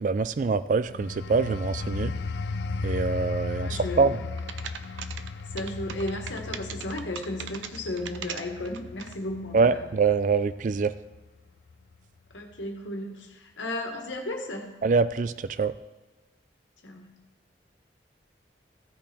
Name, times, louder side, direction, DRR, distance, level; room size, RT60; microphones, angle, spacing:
voice 1, 0.0-2.1 2.8-4.2 9.5-10.9 14.8-15.8, right 4 dB, 45° right, 15 dB, 0.3 m, -24 dB
sound 1, 0.9-11.3 11.7-12.0, left 3 dB, 70° left, 0.4 m, -36 dB
voice 2, 3.6-4.2 5.5-9.9 12.3-14.8 16.8-17.1, left 1 dB, 85° left, 3 dB, 1.6 m, -34 dB
sound 2, 4.4-9.1, right 8 dB, 90° right, 0.6 m, -39 dB
15.5 x 5.2 x 4.4 m, 1.2 s
head